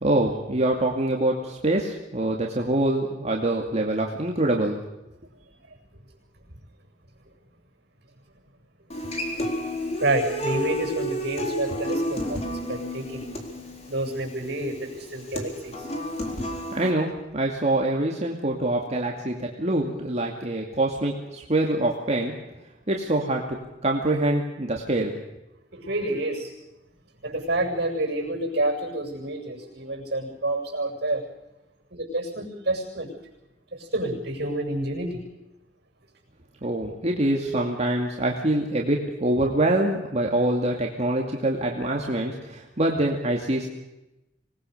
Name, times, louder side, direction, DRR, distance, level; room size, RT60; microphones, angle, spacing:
voice 1, 0.0-4.8 16.7-22.3 22.9-23.6 23.8-25.1 36.6-43.7, right 1 dB, 40° right, 0 dB, 2.4 m, -25 dB
Human voice / Acoustic guitar, 8.9-16.9, equal, 35° left, 4.0 m, -31 dB
voice 2, 10.0-13.2 13.9-15.9 25.7-26.5 27.2-31.2 31.9-33.1 33.7-35.2, right 1 dB, 65° right, 0 dB, 7.2 m, -28 dB
26.0 x 20.0 x 6.8 m, 0.96 s
head